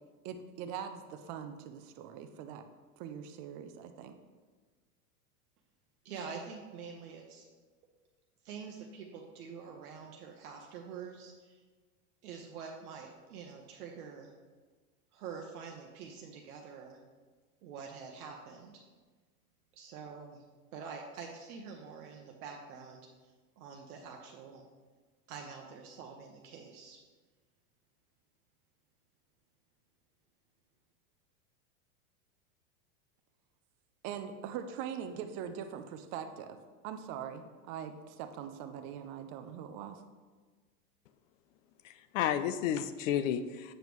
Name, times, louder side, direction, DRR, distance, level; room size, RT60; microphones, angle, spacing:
voice 1, 0.2-2.6 3.0-4.1 34.0-36.6 36.8-40.0, right 8 dB, 40° right, 7 dB, 0.5 m, -42 dB
voice 2, 6.0-7.5 8.4-11.6 12.2-14.3 15.1-17.0 17.6-18.8 19.7-20.4 20.7-23.1 23.6-24.6 25.3-27.0, right 6 dB, 70° right, 1 dB, 0.9 m, -46 dB
voice 3, 41.8-43.7, left 9 dB, 60° left, 11 dB, 0.5 m, -32 dB
7.5 x 5.2 x 3.1 m, 1.4 s
hypercardioid pair, 115°, 46 cm